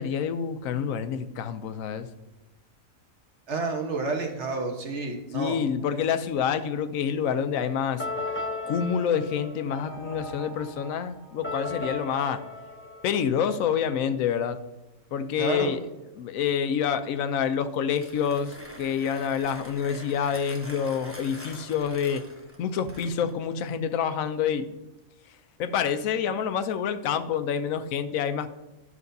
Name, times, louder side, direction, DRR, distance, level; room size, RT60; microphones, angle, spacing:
voice 1, 0.0-2.1 5.3-8.0 8.7-12.4 13.0-14.6 15.1-15.8 16.2-22.2 22.6-24.7 25.6-28.5, left 7 dB, 90° left, 10 dB, 1.0 m, -27 dB
voice 2, 3.5-5.6 15.3-15.7, right 3 dB, 60° right, 2 dB, 1.4 m, -30 dB
sound 1, 8.0-13.7, left 2 dB, 15° left, 0.5 m, -36 dB
Mechanisms, 17.9-23.4, equal, 10° right, 0.9 m, -45 dB
11.0 x 6.1 x 2.7 m, 0.98 s
omnidirectional pair, 1.4 m